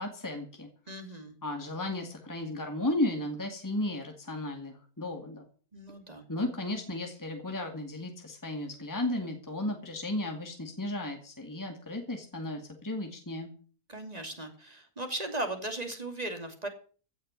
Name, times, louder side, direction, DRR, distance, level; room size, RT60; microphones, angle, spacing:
voice 1, 0.0-0.7 1.4-5.4 6.3-13.5, left 1 dB, 10° left, 3 dB, 2.3 m, -34 dB
voice 2, 0.9-1.3 5.7-6.2 13.9-16.7, right 1 dB, 25° right, 5 dB, 2.8 m, -37 dB
16.0 x 6.4 x 9.6 m, 0.42 s
omnidirectional pair, 1.6 m